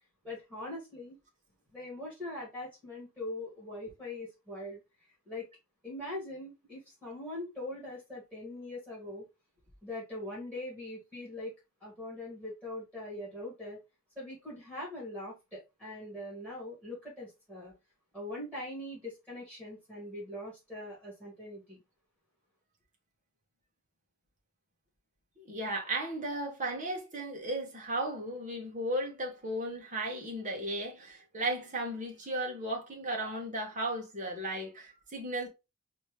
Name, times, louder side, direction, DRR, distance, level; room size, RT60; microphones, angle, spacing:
voice 1, 0.2-1.2 1.7-5.5 5.8-9.3 9.8-11.5 11.8-13.8 14.2-17.7 18.1-21.8, left 1 dB, 10° right, 2.3 m, -42 dB
voice 2, 25.4-35.5, right 1 dB, 35° right, 1.4 m, -35 dB
4.2 x 2.9 x 3.3 m
head